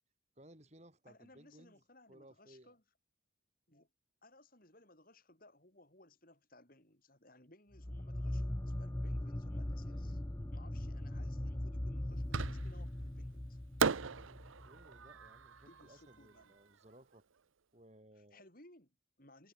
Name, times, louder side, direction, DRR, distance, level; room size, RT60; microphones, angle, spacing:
voice 1, 0.4-1.8 2.1-2.7 9.9-10.2 14.6-17.2 17.7-18.5, right 1 dB, 35° right, 4.4 m, -61 dB
voice 2, 1.1-2.8 3.7-3.9 4.2-10.2 10.5-13.6 15.7-16.5 18.2-19.5, left 2 dB, 45° left, 5.8 m, -62 dB
sound 1, 7.7-15.1, left 1 dB, 15° left, 0.6 m, -40 dB
Fireworks, 12.3-13.0 13.8-16.9, right 5 dB, 80° right, 0.8 m, -38 dB
head